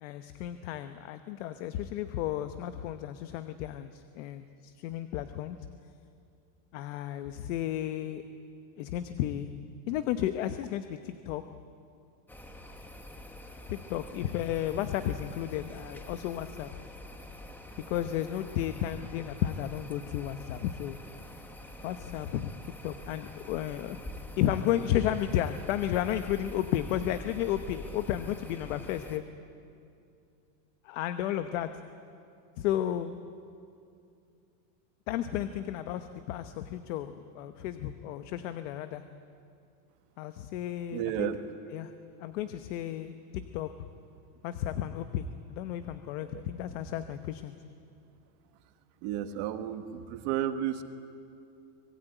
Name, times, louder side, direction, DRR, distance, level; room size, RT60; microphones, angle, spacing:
voice 1, 0.0-5.6 6.7-8.2 8.8-9.5 9.9-11.4 13.7-16.7 17.9-21.0 21.8-22.5 22.8-24.0 24.4-29.2 30.8-31.7 32.6-33.1 35.1-39.0 40.2-41.3 41.7-41.9 42.2-43.7 44.4-47.6, left 11 dB, 50° left, 10 dB, 1.0 m, -33 dB
sound 1, 12.3-29.2, left 1 dB, 5° left, 0.9 m, -46 dB
voice 2, 40.9-41.4 46.2-46.4 49.0-50.8, right 11 dB, 45° right, 8 dB, 1.4 m, -32 dB
25.5 x 20.0 x 9.1 m, 2.5 s
supercardioid pair, 175°, 48 cm